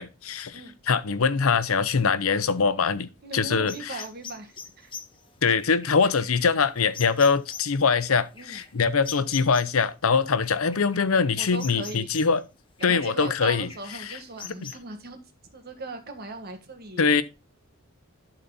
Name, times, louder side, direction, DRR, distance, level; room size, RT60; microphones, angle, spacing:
voice 1, 0.0-0.6 0.9-3.7 5.4-12.4 12.8-13.7 17.0-17.2, left 5 dB, 85° left, 0.7 m, -23 dB
voice 2, 3.2-4.9 8.4-8.6 11.4-12.1 12.8-15.2 15.5-17.2, right 2 dB, 45° right, 1.5 m, -39 dB
sound 1, 3.7-9.8 10.4-12.4 12.8-14.7, left 7 dB, 25° left, 0.8 m, -43 dB
11.5 x 4.1 x 4.0 m
head